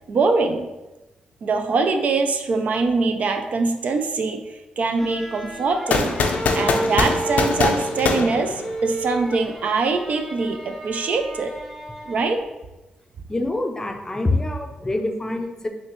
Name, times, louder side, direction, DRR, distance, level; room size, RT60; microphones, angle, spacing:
voice 1, 0.1-0.7 1.4-4.4 4.8-6.2 6.5-11.5 12.1-12.4, right 4 dB, 60° right, 5 dB, 0.4 m, -23 dB
sound 1, 4.9-12.4, right 1 dB, 10° right, 1.1 m, -32 dB
sound 2, 5.9-9.1, left 4 dB, 70° left, 0.4 m, -23 dB
voice 2, 13.3-15.7, left 2 dB, 20° left, 4 dB, 0.5 m, -25 dB
5.6 x 2.1 x 3.0 m, 1.0 s
cardioid pair, 65°, 3 cm